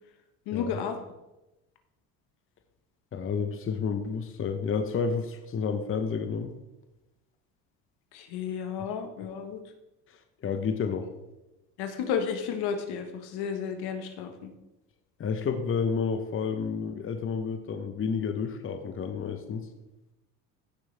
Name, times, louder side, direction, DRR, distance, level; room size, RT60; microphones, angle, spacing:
voice 1, 0.5-1.0 8.1-9.6 11.8-14.5, left 7 dB, 75° left, 6 dB, 1.5 m, -32 dB
voice 2, 3.1-6.5 10.4-11.1 15.2-19.7, left 5 dB, 35° left, 7 dB, 1.0 m, -30 dB
15.5 x 6.4 x 3.4 m, 1.0 s
supercardioid pair, 100°, 39 cm